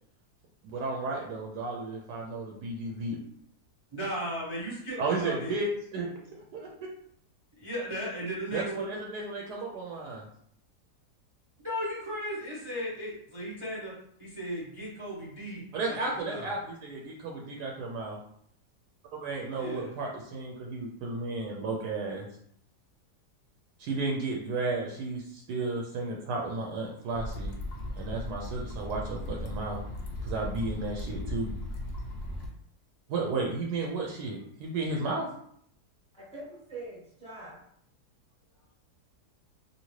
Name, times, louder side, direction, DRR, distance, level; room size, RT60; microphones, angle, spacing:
voice 1, 0.6-3.2 5.0-6.1 6.5-6.7 8.5-10.2 15.7-18.2 19.1-22.3 23.8-27.5 28.0-29.8 30.2-31.5 33.1-35.3, right 3 dB, 75° right, -1 dB, 1.1 m, -33 dB
voice 2, 3.9-5.6 7.6-8.9 11.6-13.9 14.2-16.5 19.5-19.9, equal, 40° right, -6 dB, 0.4 m, -36 dB
sound 1, 27.1-32.5, left 1 dB, 90° left, 0.5 m, -37 dB
voice 3, 36.1-37.6, right 2 dB, 5° left, -7 dB, 0.8 m, -43 dB
2.8 x 2.6 x 3.0 m, 0.67 s
omnidirectional pair, 1.8 m